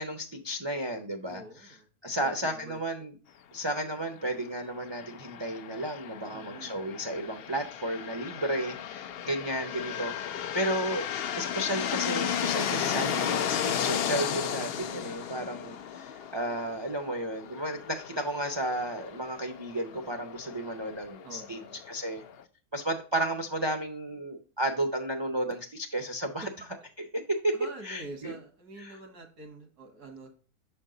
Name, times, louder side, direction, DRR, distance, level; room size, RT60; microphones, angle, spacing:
voice 1, 0.0-1.4 2.0-3.1 3.5-11.0 11.4-21.6 21.9-22.2 22.7-26.5 27.0-27.6 27.8-28.4 28.8-29.0, right 1 dB, 40° right, 4 dB, 0.3 m, -33 dB
voice 2, 1.3-1.9 2.2-2.8 6.3-6.8 12.7-13.4 21.2-21.8 26.4-26.5 27.5-30.3, right 3 dB, 85° right, 5 dB, 2.0 m, -45 dB
sound 1, 4.8-22.4, left 9 dB, 85° left, 0.5 m, -35 dB
6.6 x 4.4 x 3.7 m, 0.39 s
omnidirectional pair, 1.6 m